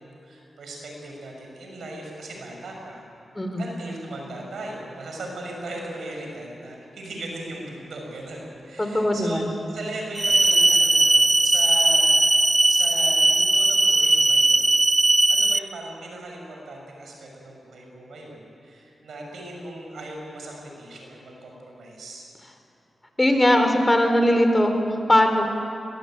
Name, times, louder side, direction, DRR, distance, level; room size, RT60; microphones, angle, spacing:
voice 1, 0.0-3.0 3.6-14.6 15.3-22.3, right 2 dB, 80° right, 0 dB, 6.3 m, -38 dB
voice 2, 3.4-3.7 8.8-9.4 23.2-25.5, left 1 dB, 20° left, 5 dB, 4.0 m, -20 dB
sound 1, 10.2-15.6, right 2 dB, 30° right, 0.9 m, -18 dB
21.5 x 19.5 x 9.0 m, 2.7 s
supercardioid pair, 45°, 0 cm